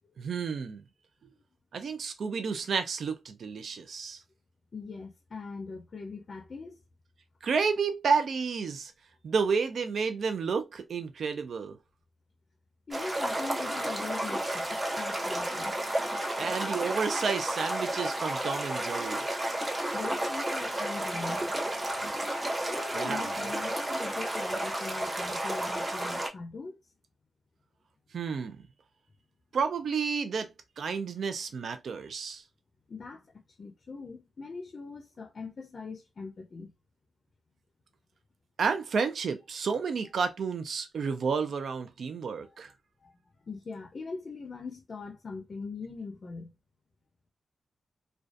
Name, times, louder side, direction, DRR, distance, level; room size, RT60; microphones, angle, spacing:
voice 1, 0.2-0.8 1.7-4.2 7.4-8.9 9.2-11.8 16.4-19.2 22.9-23.2 28.1-28.6 29.5-30.5 30.8-32.4 38.6-42.7, right 5 dB, 70° right, 0.3 m, -31 dB
voice 2, 4.7-6.8 12.9-15.8 19.9-21.5 22.7-26.8 32.9-33.3 33.6-36.7 43.0-43.1 43.4-46.6, left 4 dB, 50° left, 0.4 m, -41 dB
sound 1, 12.9-26.3, right 1 dB, 30° right, 0.8 m, -32 dB
2.5 x 2.2 x 2.3 m
cardioid pair, 70°, 0 cm